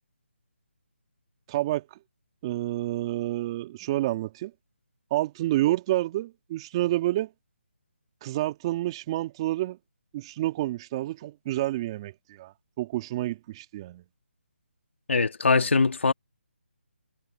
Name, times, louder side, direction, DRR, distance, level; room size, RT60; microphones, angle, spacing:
voice 1, 1.5-1.9 2.4-4.5 5.1-7.3 8.2-9.8 10.1-14.0, right 16 dB, 25° right, 2.2 m, -29 dB
voice 2, 15.1-16.1, left 4 dB, 75° left, 1.7 m, -22 dB
figure-of-eight pair, 160°, 7 cm